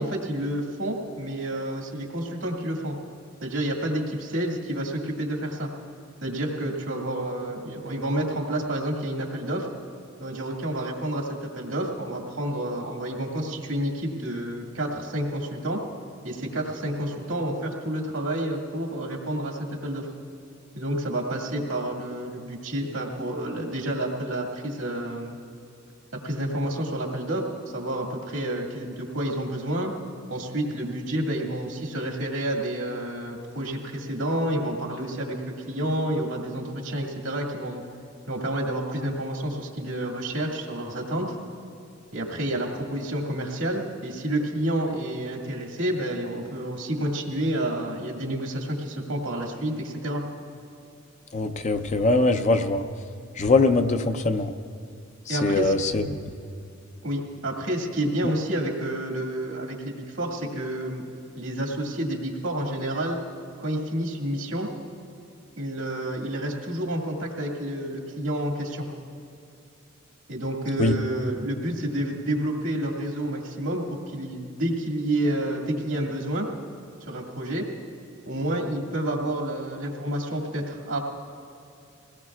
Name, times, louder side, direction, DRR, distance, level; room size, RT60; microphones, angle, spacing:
voice 1, 0.0-3.0 3.4-5.7 6.2-9.7 10.2-15.8 16.2-20.1 20.7-25.4 26.2-27.5 27.7-29.9 30.3-37.8 38.3-41.3 42.1-50.2 55.3-55.7 57.0-61.1 61.4-63.2 63.6-64.7 65.6-68.9 70.3-76.5 77.1-77.7 78.3-81.0, right 1 dB, 80° right, 0 dB, 2.0 m, -29 dB
voice 2, 51.3-52.8 53.4-54.5 55.3-56.3 70.8-71.0, left 3 dB, 35° left, 8 dB, 0.5 m, -22 dB
22.5 x 18.0 x 2.4 m, 2.6 s
head